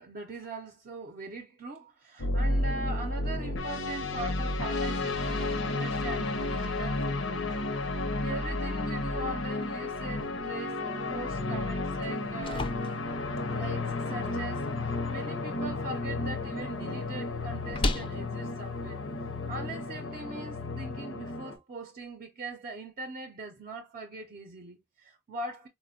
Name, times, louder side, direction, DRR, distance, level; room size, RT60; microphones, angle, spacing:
voice 1, 0.0-7.9 8.2-10.8 11.1-12.8 13.5-25.7, right 2 dB, 45° right, 0.5 m, -41 dB
sound 1, 2.2-21.6, left 2 dB, 80° left, 0.7 m, -32 dB
sound 2, 12.0-20.0, left 2 dB, 25° left, 0.4 m, -39 dB
4.1 x 2.1 x 2.5 m
head